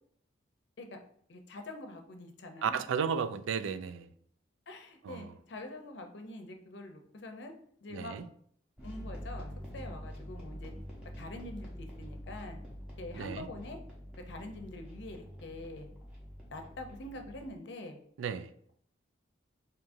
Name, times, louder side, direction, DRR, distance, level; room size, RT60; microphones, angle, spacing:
voice 1, 1.3-2.8 4.7-7.5 7.8-8.2 8.8-10.7 11.2-12.6 13.0-13.8 14.3-15.9 16.5-18.0, left 2 dB, 65° left, 0.6 m, -45 dB
voice 2, 2.6-4.1 5.0-5.3 7.9-8.3 13.1-13.5 18.2-18.5, right 6 dB, 85° right, 0.3 m, -34 dB
sound 1, 8.8-17.5, equal, 5° right, 0.9 m, -46 dB
4.7 x 2.7 x 2.6 m
head